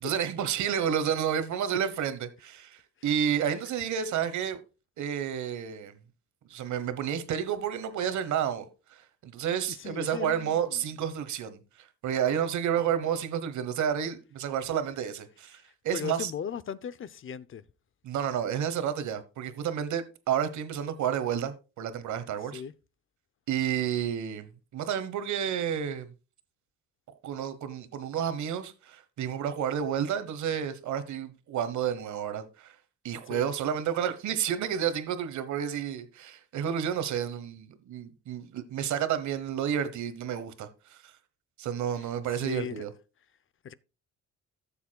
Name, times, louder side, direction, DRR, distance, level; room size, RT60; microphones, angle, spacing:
voice 1, 0.0-4.6 5.0-6.0 6.5-16.3 18.0-22.6 23.5-24.5 24.7-26.1 27.2-32.7 33.0-41.1 41.6-42.9, right 9 dB, 70° right, 1.2 m, -30 dB
voice 2, 9.7-10.8 15.9-17.7 22.5-22.7 33.3-33.4 42.0-42.8 43.6-43.7, left 8 dB, 45° left, 0.6 m, -38 dB
14.5 x 7.1 x 2.3 m
cardioid pair, 90°, 30 cm